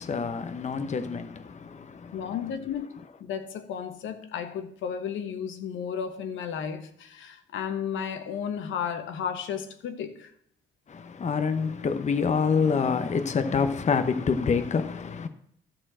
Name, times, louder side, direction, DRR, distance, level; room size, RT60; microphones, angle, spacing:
voice 1, 0.0-2.3 10.9-15.3, left 5 dB, 35° left, 0.9 m, -27 dB
voice 2, 2.1-10.3, left 7 dB, 80° left, 1.1 m, -33 dB
12.0 x 4.4 x 7.5 m
cardioid pair, 90°, 20 cm